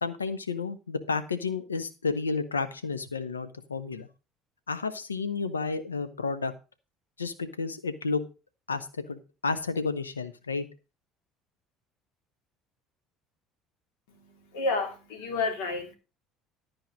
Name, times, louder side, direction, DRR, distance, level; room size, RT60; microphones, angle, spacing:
voice 1, 0.0-4.1 4.7-6.5 7.2-8.2 8.7-10.7, left 4 dB, 85° left, 11 dB, 0.9 m, -31 dB
voice 2, 14.1-15.9, left 3 dB, 70° left, 5 dB, 2.6 m, -31 dB
13.0 x 4.7 x 6.2 m, 0.32 s
figure-of-eight pair, 60°, 0 cm